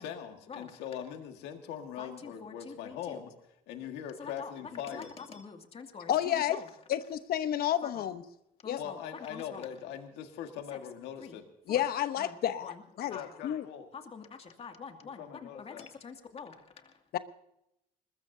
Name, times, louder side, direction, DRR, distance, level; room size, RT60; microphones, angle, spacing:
voice 1, 0.0-3.3 3.7-5.1 8.8-11.4 13.0-13.9 15.2-15.9, left 9 dB, 90° left, 5 dB, 1.8 m, -41 dB
voice 2, 2.0-3.2 4.2-6.7 7.8-8.0 8.6-9.0 9.3-9.7 10.7-10.8 11.2-11.4 11.7-11.8 12.2-12.8 13.1-13.3 13.9-17.0, left 5 dB, 35° left, 4 dB, 2.4 m, -46 dB
voice 3, 6.1-6.6 6.9-8.2 8.7-8.8 11.7-13.6 17.1-17.2, left 11 dB, 65° left, 11 dB, 1.0 m, -30 dB
21.5 x 20.5 x 2.8 m, 0.82 s
cardioid pair, 110°, 17 cm